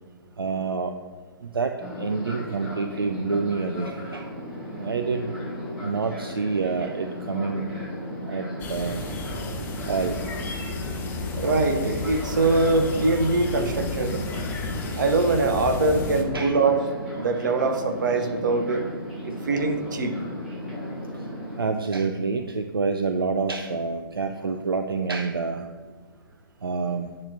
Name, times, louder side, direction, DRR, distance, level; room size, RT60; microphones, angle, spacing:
voice 1, 0.4-0.9 1.4-4.3 4.8-5.3 5.8-7.7 8.3-9.1 9.9-11.0 16.3-16.6 21.6-25.7 26.6-27.2, right 4 dB, 75° right, 7 dB, 0.4 m, -28 dB
Fixed-wing aircraft airplane, 1.8-21.6, equal, 5° right, 2.2 m, -35 dB
sound 1, 8.6-16.2, left 4 dB, 15° left, 0.7 m, -33 dB
voice 2, 11.3-14.2 15.0-16.8 17.2-18.8 19.2-20.1, right 3 dB, 55° right, 6 dB, 0.9 m, -23 dB
8.8 x 3.2 x 6.0 m, 1.5 s
figure-of-eight pair, 120°, 12 cm